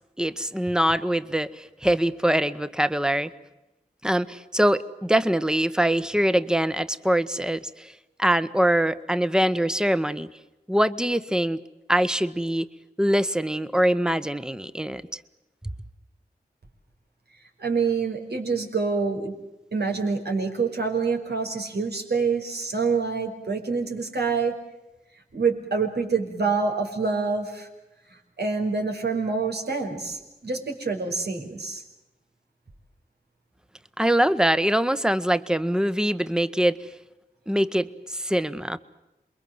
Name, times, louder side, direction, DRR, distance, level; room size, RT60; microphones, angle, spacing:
voice 1, 0.2-3.3 4.0-7.9 8.2-10.3 10.7-11.6 11.9-12.7 13.0-15.2 34.0-36.9 37.5-38.8, right 1 dB, 5° right, 14 dB, 1.3 m, -23 dB
voice 2, 17.6-19.4 19.7-24.6 25.3-27.7 28.1-31.8, right 4 dB, 80° right, 3 dB, 5.5 m, -26 dB
28.5 x 23.0 x 7.9 m, 0.98 s
wide cardioid pair, 60°, 17 cm